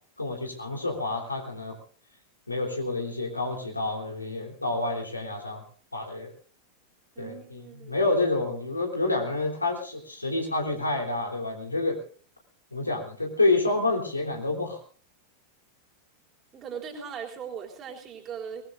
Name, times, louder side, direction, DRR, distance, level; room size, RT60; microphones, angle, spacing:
voice 1, 0.2-1.8 2.5-5.6 5.9-6.3 7.2-7.6 7.9-12.0 12.7-14.8, left 2 dB, 80° left, 0 dB, 3.4 m, -28 dB
voice 2, 7.2-8.0 16.5-18.6, right 7 dB, 30° right, 1 dB, 3.6 m, -39 dB
23.5 x 19.5 x 2.6 m, 0.43 s
figure-of-eight pair, 90°, 0 cm